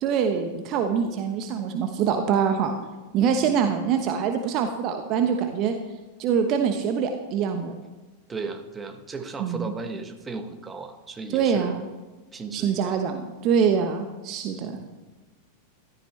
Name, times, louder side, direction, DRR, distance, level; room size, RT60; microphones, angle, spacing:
voice 1, 0.0-2.8 3.1-5.7 6.2-7.7 9.4-9.7 11.3-11.8 12.5-14.8, right 7 dB, 40° right, 6 dB, 1.1 m, -24 dB
voice 2, 8.3-11.7 12.3-13.0 14.5-14.8, right 4 dB, 15° right, 6 dB, 1.4 m, -36 dB
15.0 x 13.5 x 3.3 m, 1.3 s
figure-of-eight pair, 90°, 0 cm